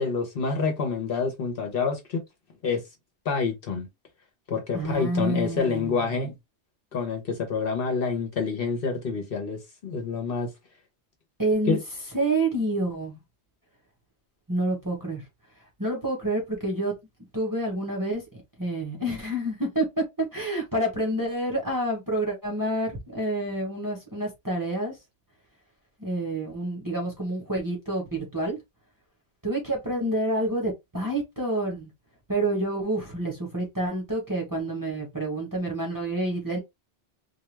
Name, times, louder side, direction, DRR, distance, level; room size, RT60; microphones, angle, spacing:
voice 1, 0.0-2.2 2.6-2.8 3.2-3.9 4.5-6.3 6.9-10.5 11.6-11.8, left 5 dB, 60° left, 0.9 m, -27 dB
voice 2, 4.7-6.3 11.4-11.8 12.1-13.2 14.5-15.2 15.8-16.9 17.3-18.2 18.6-19.8 20.2-24.9 26.0-28.6 29.4-31.9 32.3-36.6, right 1 dB, 20° right, 0.8 m, -28 dB
2.3 x 2.2 x 3.1 m
omnidirectional pair, 1.2 m